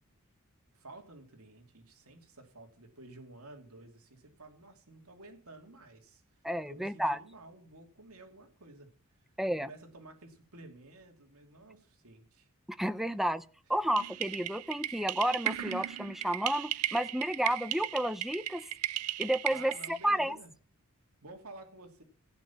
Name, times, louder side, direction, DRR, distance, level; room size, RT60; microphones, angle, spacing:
voice 1, 0.7-6.2 6.7-8.9 9.6-12.5 13.7-13.9 19.5-20.5 21.2-22.0, right 2 dB, 70° right, 4 dB, 2.8 m, -52 dB
voice 2, 6.4-7.2 9.4-9.7 12.7-13.4 13.7-18.7 19.2-20.4, equal, ahead, 12 dB, 0.6 m, -31 dB
sound 1, 14.0-20.1, right 12 dB, 90° right, 0.6 m, -36 dB
16.0 x 9.0 x 5.8 m, 0.41 s
head